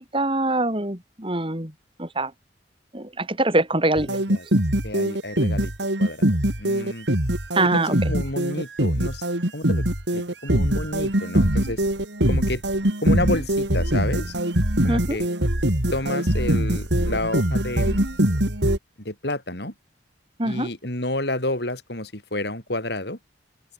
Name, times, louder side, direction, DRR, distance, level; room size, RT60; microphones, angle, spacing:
voice 1, 0.0-1.7 2.0-2.3 2.9-4.1 7.5-7.9 14.9-15.2 20.4-20.7, right 2 dB, 30° right, 4.2 m, -23 dB
sound 1, 4.0-18.8, right 1 dB, 70° right, 3.9 m, -22 dB
voice 2, 4.1-4.5 4.8-5.7 6.0-6.3 6.6-7.1 7.7-9.2 9.5-9.8 10.1-11.8 12.3-12.6 13.0-14.3 14.8-15.3 15.9-18.0 19.0-19.7 20.4-23.2, left 1 dB, 60° left, 5.7 m, -30 dB
open air
head